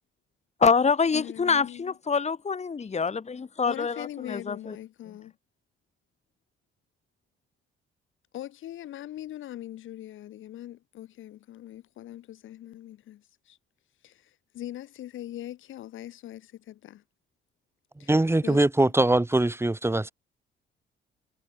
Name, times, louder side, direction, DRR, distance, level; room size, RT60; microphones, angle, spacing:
voice 1, 0.6-4.8, left 5 dB, 35° left, 3.1 m, -25 dB
voice 2, 1.1-1.9 2.8-2.9 3.6-5.3 8.3-13.6 14.0-17.0 18.0-18.1 18.4-18.9, left 13 dB, 80° left, 7.8 m, -41 dB
voice 3, 18.1-20.1, right 2 dB, 10° right, 3.0 m, -22 dB
cardioid pair, 90°, 20 cm